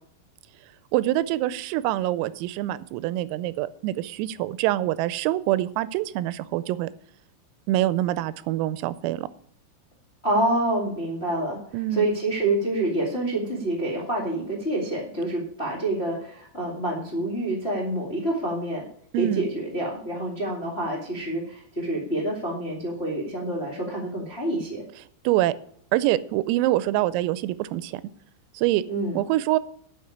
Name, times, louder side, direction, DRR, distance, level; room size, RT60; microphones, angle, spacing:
voice 1, 0.9-6.9 7.7-9.3 11.7-12.1 19.1-19.5 25.3-25.5 25.9-28.0 28.5-28.8 29.1-29.6, right 15 dB, 85° right, 17 dB, 3.3 m, -25 dB
voice 2, 10.2-11.6 11.9-18.8 19.1-24.8 28.9-29.2, right 1 dB, 40° left, -3 dB, 0.9 m, -27 dB
10.5 x 6.1 x 8.5 m, 0.63 s
omnidirectional pair, 5.9 m